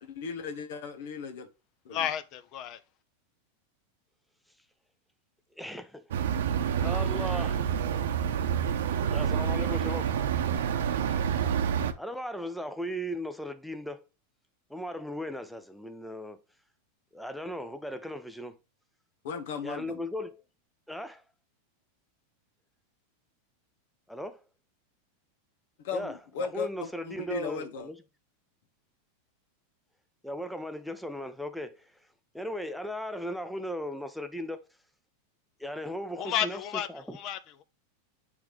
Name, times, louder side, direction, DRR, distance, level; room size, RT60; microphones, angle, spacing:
voice 1, 0.1-1.5 1.8-2.1 19.2-20.0 25.8-27.9, left 5 dB, 65° left, 1.1 m, -36 dB
voice 2, 1.9-2.8 36.2-37.6, left 10 dB, 40° left, 0.7 m, -32 dB
voice 3, 5.6-6.0 6.7-7.7 9.1-10.2 12.0-14.0 14.7-16.4 17.1-18.6 19.6-20.4 20.9-21.2 24.1-24.4 25.9-26.2 26.5-28.0 30.2-31.9 32.3-34.6 35.6-36.6 36.9-37.2, equal, ahead, 0.6 m, -37 dB
sound 1, 6.1-11.9, right 8 dB, 85° right, 0.8 m, -28 dB
8.6 x 3.6 x 3.1 m
supercardioid pair, 155°, 0 cm